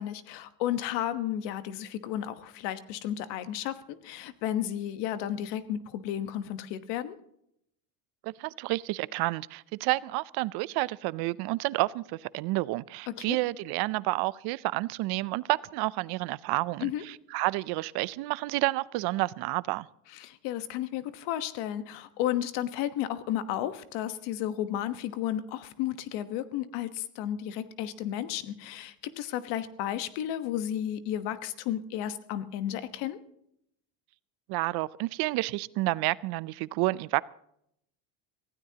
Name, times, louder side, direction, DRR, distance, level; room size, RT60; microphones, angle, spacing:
voice 1, 0.0-7.2 13.2-13.4 16.8-17.0 20.1-33.2, left 11 dB, 70° left, 12 dB, 1.3 m, -33 dB
voice 2, 8.2-19.9 34.5-37.2, right 20 dB, 60° right, 20 dB, 0.5 m, -30 dB
24.0 x 16.0 x 2.9 m, 0.74 s
cardioid pair, 135°, 45 cm